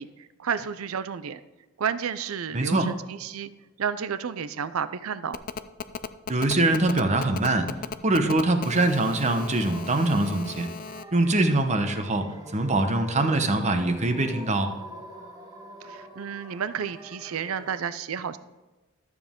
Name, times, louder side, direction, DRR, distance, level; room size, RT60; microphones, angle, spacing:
voice 1, 0.0-1.4 1.8-3.5 3.8-5.4 15.8-18.4, right 7 dB, 80° right, 14 dB, 0.5 m, -31 dB
voice 2, 2.5-2.9 6.3-7.7 8.0-10.7 11.1-14.7, right 2 dB, 35° right, 7 dB, 0.9 m, -23 dB
Telephone, 5.3-11.0, left 5 dB, 40° left, 0.4 m, -36 dB
sound 1, 9.2-17.8, right 1 dB, 20° right, 1.5 m, -45 dB
12.5 x 7.2 x 3.7 m, 1.1 s
head